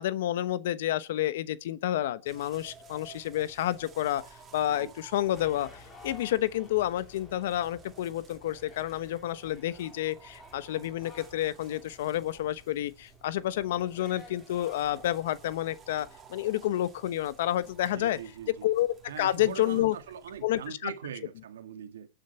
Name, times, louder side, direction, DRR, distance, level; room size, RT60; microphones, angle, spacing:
voice 1, 0.0-4.2 4.5-18.2 18.5-19.9 20.4-20.9, left 13 dB, 70° left, 1.0 m, -29 dB
sound 1, 2.2-20.7, right 6 dB, 20° right, 3.3 m, -55 dB
sound 2, 5.3-16.2, left 4 dB, 25° left, 4.2 m, -54 dB
voice 2, 17.8-18.7 19.1-22.1, right 8 dB, 85° right, 1.8 m, -42 dB
21.0 x 9.2 x 4.4 m
hypercardioid pair, 130°, 0 cm